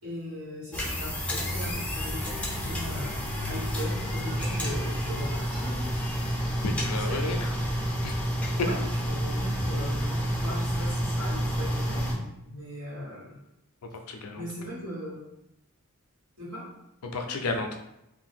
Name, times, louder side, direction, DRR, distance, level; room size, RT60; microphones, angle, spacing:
voice 1, 0.0-3.2 3.5-5.8 6.6-7.2 8.5-13.4 14.3-15.2 16.4-16.7, equal, 75° right, -7 dB, 1.5 m, -39 dB
sound 1, 0.7-12.1, equal, 5° left, 0.4 m, -29 dB
voice 2, 6.6-7.5 8.0-8.2 14.1-14.4 17.1-17.8, left 3 dB, 80° left, 4 dB, 0.4 m, -32 dB
2.6 x 2.2 x 3.5 m, 0.85 s
head